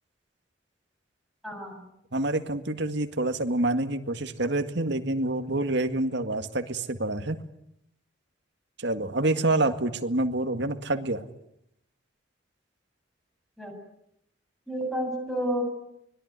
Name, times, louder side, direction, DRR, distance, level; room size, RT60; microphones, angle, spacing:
voice 1, 1.4-1.9 13.6-13.8 14.7-15.6, equal, ahead, 2 dB, 7.7 m, -30 dB
voice 2, 2.1-7.4 8.8-11.2, right 2 dB, 60° right, 7 dB, 2.0 m, -27 dB
25.0 x 21.0 x 9.7 m, 0.78 s
head